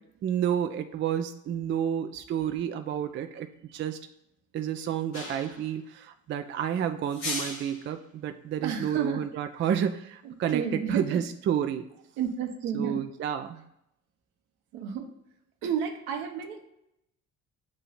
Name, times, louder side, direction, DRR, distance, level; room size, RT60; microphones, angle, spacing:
voice 1, 0.2-3.5 3.7-4.0 4.5-10.6 10.9-11.9 12.7-13.6, right 9 dB, 30° right, 8 dB, 0.4 m, -30 dB
sound 1, 5.1-5.7 7.1-7.9, left 2 dB, 80° left, 1.2 m, -36 dB
voice 2, 8.6-9.2 10.2-11.2 12.2-13.0 14.7-15.1 15.6-16.7, right 7 dB, 60° right, 4 dB, 1.0 m, -31 dB
7.5 x 2.8 x 5.6 m, 0.81 s
figure-of-eight pair, 50°, 42 cm